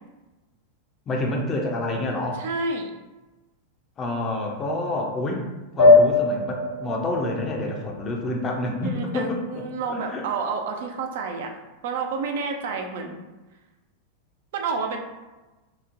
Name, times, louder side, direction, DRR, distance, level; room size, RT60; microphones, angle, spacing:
voice 1, 1.1-2.4 4.0-5.5 5.7-9.4 9.9-10.2, left 2 dB, 25° left, 1 dB, 0.5 m, -28 dB
voice 2, 2.3-2.9 8.8-11.5 11.8-13.2 14.5-15.0, right 4 dB, 55° right, 3 dB, 0.3 m, -29 dB
sound 1, 5.8-8.7, left 3 dB, 70° left, 0.9 m, -20 dB
2.9 x 2.0 x 2.4 m, 1.1 s
figure-of-eight pair, 90°, 0 cm